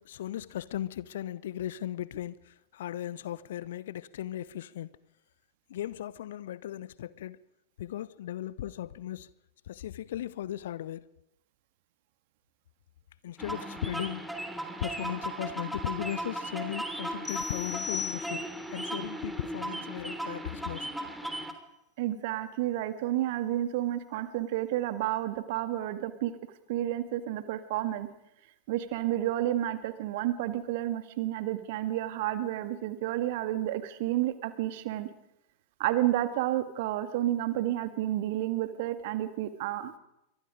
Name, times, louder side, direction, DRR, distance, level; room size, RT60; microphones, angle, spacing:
voice 1, 0.0-4.9 5.7-7.4 7.8-9.3 9.7-11.1 13.2-14.3 14.6-18.4 18.7-20.9, left 12 dB, 60° left, 0.9 m, -37 dB
sound 1, 13.4-21.5, right 1 dB, ahead, 3.1 m, -37 dB
sound 2, 17.2-18.8, left 5 dB, 15° left, 1.2 m, -37 dB
voice 2, 22.0-26.3 26.7-28.1 28.7-35.1 35.8-39.9, right 13 dB, 50° right, 2.0 m, -30 dB
27.5 x 24.5 x 5.2 m
figure-of-eight pair, 90°, 0 cm